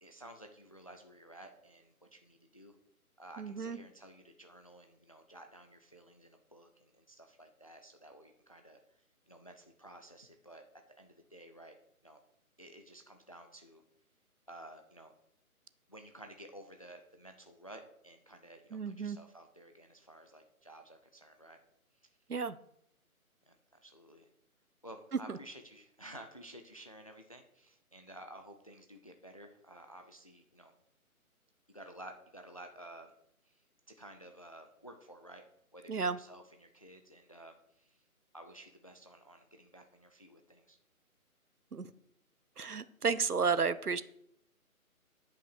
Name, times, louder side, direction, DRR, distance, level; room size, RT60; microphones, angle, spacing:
voice 1, 0.0-2.8 3.2-8.8 9.3-10.6 11.0-11.8 12.0-12.2 12.6-13.8 14.5-15.1 15.9-21.6 23.5-23.6 23.8-24.3 24.8-30.7 31.7-33.1 34.0-35.4 35.7-38.0 38.3-40.8, right 1 dB, 25° left, 0.5 m, -53 dB
voice 2, 3.4-3.8 18.7-19.2 22.3-22.6 25.3-25.4 35.9-36.2 41.7-41.9 42.6-44.0, right 5 dB, 90° right, 0.9 m, -32 dB
10.5 x 5.8 x 6.4 m
figure-of-eight pair, 150°, 44 cm